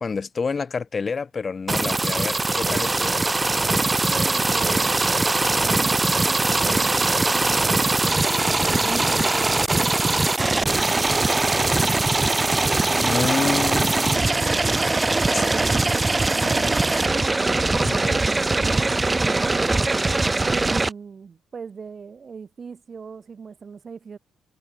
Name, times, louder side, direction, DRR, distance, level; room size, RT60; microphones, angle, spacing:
voice 1, 0.0-3.2 8.7-9.1 13.0-14.6 15.3-15.4 16.4-16.7 17.8-18.2, left 5 dB, 35° left, 1.9 m, -29 dB
sound 1, 1.7-20.9, right 2 dB, 20° right, 0.3 m, -21 dB
voice 2, 4.1-5.1 5.6-8.4 8.8-12.3 12.9-14.4 15.1-17.7 18.0-19.6 20.4-24.2, right 5 dB, 40° right, 4.7 m, -38 dB
cardioid pair, 90°, 0 cm